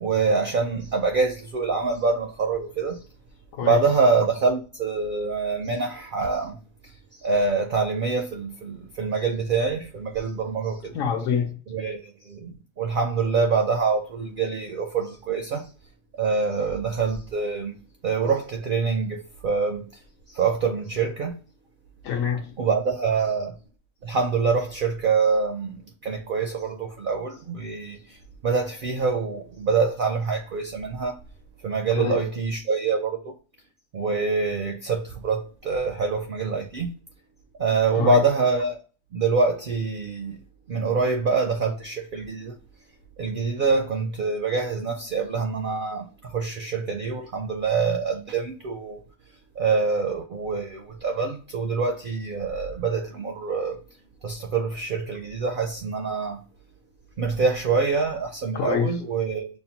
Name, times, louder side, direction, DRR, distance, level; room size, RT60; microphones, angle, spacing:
voice 1, 0.0-3.0 3.6-6.6 7.2-10.9 11.7-15.7 16.2-17.7 18.0-19.9 20.3-21.4 22.6-23.6 24.0-28.2 28.4-31.2 31.6-33.3 33.9-36.9 37.6-38.8 39.1-40.4 40.7-42.6 43.2-49.0 49.6-53.8 54.2-56.4 57.2-59.5, right 4 dB, 65° right, 0.5 m, -25 dB
voice 2, 10.9-11.5 22.0-22.5 32.0-32.2 37.9-38.2 58.5-59.0, left 7 dB, 75° left, 1.0 m, -26 dB
5.5 x 2.1 x 2.8 m
omnidirectional pair, 1.4 m